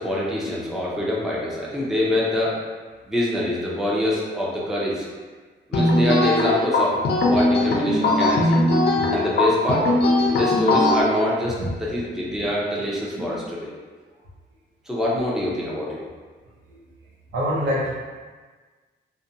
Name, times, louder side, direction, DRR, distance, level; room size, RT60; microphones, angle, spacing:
voice 1, 0.0-2.6 3.1-5.1 5.7-8.6 9.0-9.9 10.3-13.7 14.9-16.0, left 1 dB, ahead, -6 dB, 0.6 m, -25 dB
sound 1, 5.7-11.0, left 2 dB, 60° left, 0.5 m, -20 dB
voice 2, 17.3-17.9, equal, 75° right, -5 dB, 0.7 m, -25 dB
2.5 x 2.2 x 2.6 m, 1.4 s
cardioid pair, 80°, 19 cm